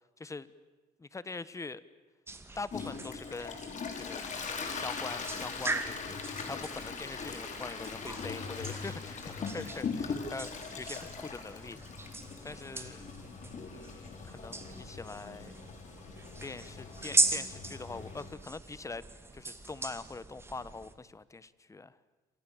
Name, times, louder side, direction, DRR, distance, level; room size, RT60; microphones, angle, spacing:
voice 1, 0.2-0.5 1.0-1.8 2.5-3.6 3.9-4.2 4.7-6.2 6.5-11.8 12.4-13.1 13.7-15.6 16.4-19.0 19.3-21.9, left 3 dB, 20° left, 17 dB, 1.2 m, -43 dB
sound 1, 2.3-20.9, right 2 dB, 15° right, 2.4 m, -39 dB
Toilet flush, 2.7-18.3, left 5 dB, 45° left, 5.0 m, -41 dB
28.5 x 26.0 x 7.3 m, 1.3 s
cardioid pair, 110°, 17 cm